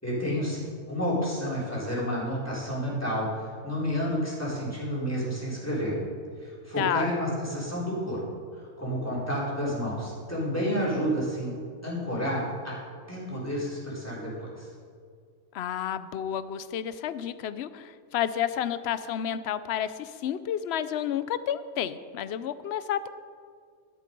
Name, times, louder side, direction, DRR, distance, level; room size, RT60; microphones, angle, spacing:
voice 1, 0.0-6.0 6.4-8.2 8.6-11.5 11.8-12.8 13.1-14.7, equal, 10° left, -7 dB, 3.9 m, -30 dB
voice 2, 6.8-7.1 15.5-23.1, left 10 dB, 65° left, 14 dB, 0.7 m, -30 dB
12.0 x 11.5 x 5.3 m, 2.1 s
omnidirectional pair, 1.5 m